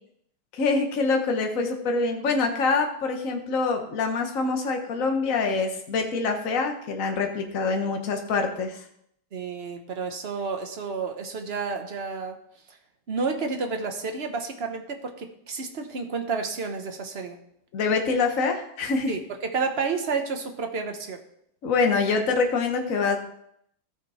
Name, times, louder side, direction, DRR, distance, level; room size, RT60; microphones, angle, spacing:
voice 1, 0.5-8.8 17.7-19.1 21.6-23.2, left 4 dB, 45° left, 4 dB, 1.4 m, -25 dB
voice 2, 9.3-12.4 13.1-17.4 19.1-19.2 19.5-21.2, right 4 dB, 40° right, 5 dB, 1.0 m, -30 dB
14.5 x 6.0 x 4.3 m, 0.72 s
omnidirectional pair, 2.3 m